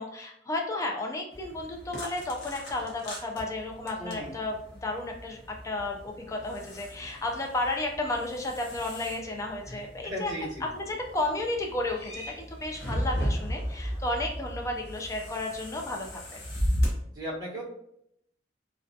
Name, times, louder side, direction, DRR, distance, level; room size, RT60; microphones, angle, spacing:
voice 1, 0.0-4.6 4.8-10.3 10.6-16.4, left 2 dB, 20° left, 2 dB, 0.3 m, -33 dB
sound 1, 1.3-16.9, equal, 65° left, 0.7 m, -36 dB
voice 2, 4.0-4.3 9.7-10.7 17.1-17.6, equal, 25° right, -8 dB, 1.0 m, -37 dB
2.4 x 2.2 x 2.6 m, 0.74 s
head